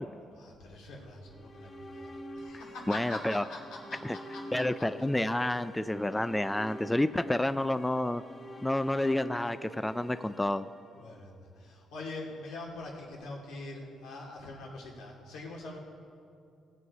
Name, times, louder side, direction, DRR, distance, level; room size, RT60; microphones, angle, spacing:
voice 1, 0.2-4.8 10.9-15.8, left 2 dB, 90° left, -2 dB, 2.5 m, -44 dB
sound 1, 1.2-11.4, equal, 35° left, 1.8 m, -45 dB
voice 2, 2.9-3.4 4.0-4.2 4.5-8.2 8.6-10.7, left 1 dB, 10° left, 12 dB, 0.3 m, -29 dB
19.0 x 8.0 x 4.8 m, 2.5 s
cardioid pair, 90°, 0 cm